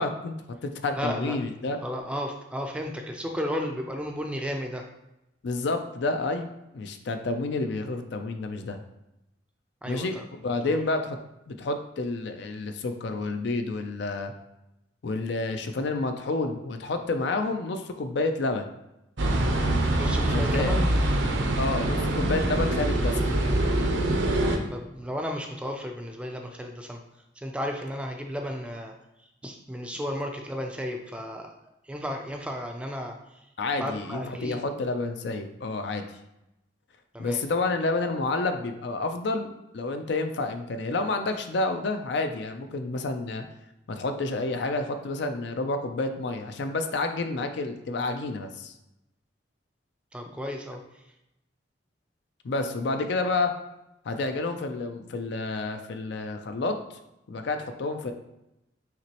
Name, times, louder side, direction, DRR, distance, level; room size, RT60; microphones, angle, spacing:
voice 1, 0.0-1.8 5.4-8.8 9.9-10.1 10.4-11.2 11.5-14.3 15.0-18.7 20.2-20.8 21.6-23.3 33.6-36.0 37.2-43.4 43.9-48.7 52.4-53.5 54.1-56.8 57.3-58.1, left 3 dB, 60° left, 7 dB, 0.4 m, -29 dB
voice 2, 1.0-1.4 1.8-4.8 9.8-10.2 10.6-10.8 20.0-20.9 24.7-27.0 27.4-28.9 29.2-31.5 31.8-33.5 33.8-34.6 37.1-37.4 50.1-51.1, equal, 5° right, 3 dB, 0.3 m, -34 dB
sound 1, 19.2-24.6, right 1 dB, 75° right, 0.7 m, -24 dB
5.8 x 3.0 x 2.9 m, 0.89 s
head